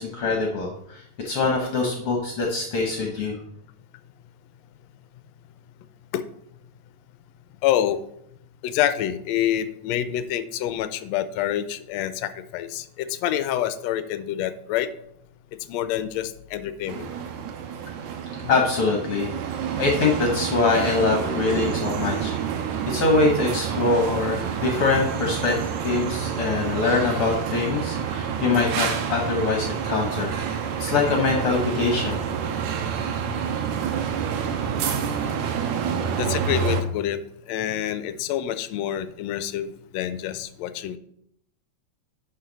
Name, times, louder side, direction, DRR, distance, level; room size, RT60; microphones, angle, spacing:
voice 1, 0.0-3.4 18.5-19.3 19.8-22.6 22.9-25.6 25.8-30.3 30.8-32.2, left 3 dB, 55° left, 1 dB, 1.8 m, -23 dB
voice 2, 7.6-8.0 8.6-14.9 15.7-17.1 36.1-37.2 37.5-41.0, left 11 dB, 80° left, 12 dB, 1.7 m, -27 dB
sound 1, 16.9-36.8, right 7 dB, 85° right, 2.2 m, -28 dB
11.0 x 5.7 x 4.0 m, 0.72 s
omnidirectional pair, 3.3 m